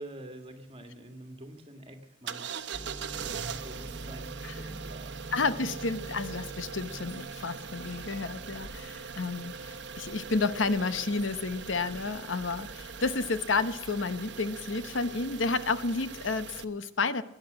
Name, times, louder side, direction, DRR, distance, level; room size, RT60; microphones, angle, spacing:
voice 1, 0.0-2.9 3.6-5.4, right 1 dB, 30° right, 6 dB, 1.8 m, -47 dB
sound 1, 2.3-16.6, right 6 dB, 65° right, 0.9 m, -41 dB
sound 2, 2.7-14.0, right 1 dB, 5° right, 0.9 m, -48 dB
voice 2, 5.3-17.2, left 3 dB, 90° left, 12 dB, 1.0 m, -31 dB
sound 3, 6.8-12.1, equal, 30° left, 6.3 m, -54 dB
17.5 x 10.5 x 6.3 m, 0.95 s
head